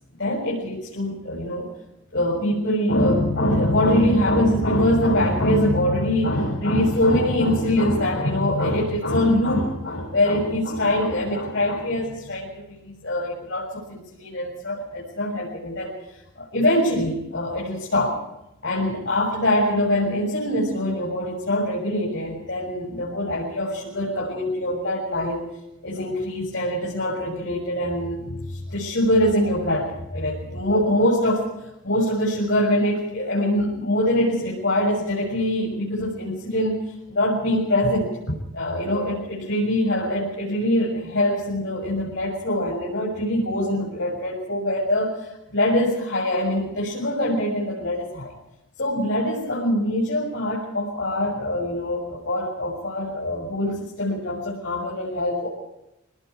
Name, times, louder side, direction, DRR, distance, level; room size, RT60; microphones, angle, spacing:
voice 1, 0.2-1.7 2.1-15.9 16.4-18.1 18.6-25.4 25.8-31.5 31.8-36.8 37.1-48.3 48.8-55.5, left 1 dB, 60° left, -4 dB, 7.2 m, -23 dB
29.5 x 19.5 x 4.7 m, 0.89 s
head